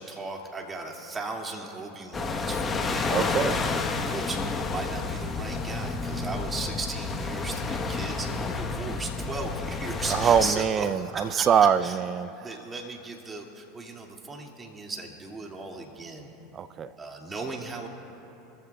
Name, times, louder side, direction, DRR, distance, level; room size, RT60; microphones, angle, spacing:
voice 1, 0.0-11.5 11.8-12.0 12.4-16.3 17.0-17.9, right 3 dB, 20° right, 0 dB, 2.3 m, -37 dB
sound 1, 2.1-10.5, left 4 dB, 25° left, 1.2 m, -30 dB
voice 2, 3.1-3.6 10.1-12.3 16.5-16.9, right 8 dB, 35° right, 15 dB, 0.5 m, -23 dB
26.0 x 15.0 x 2.4 m, 3.0 s
hypercardioid pair, 95°, 0 cm